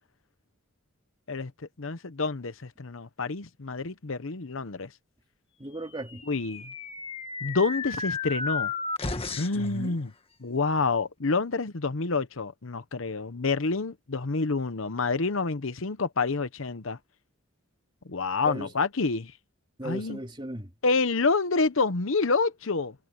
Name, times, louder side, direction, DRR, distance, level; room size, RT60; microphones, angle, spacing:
voice 1, 1.8-4.9 6.3-6.7 7.4-8.7 9.4-10.1 10.4-17.0 18.1-19.3 19.8-20.2 20.8-22.9, left 4 dB, 65° left, 0.9 m, -28 dB
voice 2, 5.6-6.2 9.5-10.0 18.4-18.7 19.8-20.7, right 1 dB, 20° right, 3.2 m, -36 dB
sound 1, 6.1-9.7, left 4 dB, 25° left, 1.7 m, -33 dB
head